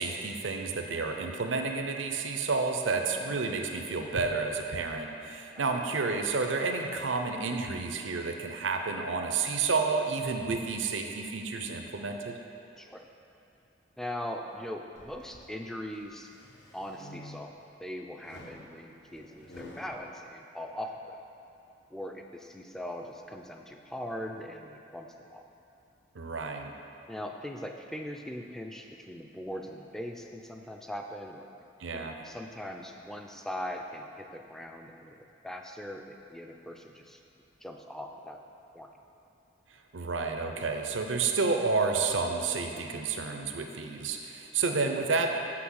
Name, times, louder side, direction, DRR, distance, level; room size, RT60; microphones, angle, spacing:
voice 1, 0.0-12.4 26.1-26.7 31.8-32.1 39.9-45.4, right 4 dB, 85° right, 4 dB, 0.6 m, -30 dB
voice 2, 14.0-16.3 16.7-21.2 21.9-25.4 27.1-31.5 31.9-37.2 37.6-38.4 38.7-38.9, left 1 dB, ahead, 3 dB, 0.4 m, -40 dB
sound 1, 15.0-15.5 16.0-17.7 18.2-20.0, left 1 dB, 60° left, 0.9 m, -49 dB
6.0 x 5.9 x 6.3 m, 2.7 s
head